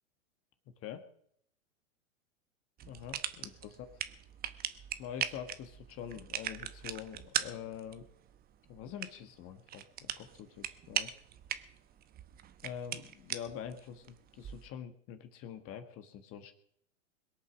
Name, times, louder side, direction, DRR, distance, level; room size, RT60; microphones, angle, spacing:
voice 1, 2.8-3.9 5.0-8.1 8.7-11.1 12.6-16.5, left 9 dB, 35° left, 8 dB, 1.5 m, -45 dB
sound 1, 2.8-14.7, right 10 dB, 25° right, 0.9 m, -41 dB
21.5 x 8.3 x 6.2 m, 0.68 s
hypercardioid pair, 120°, 38 cm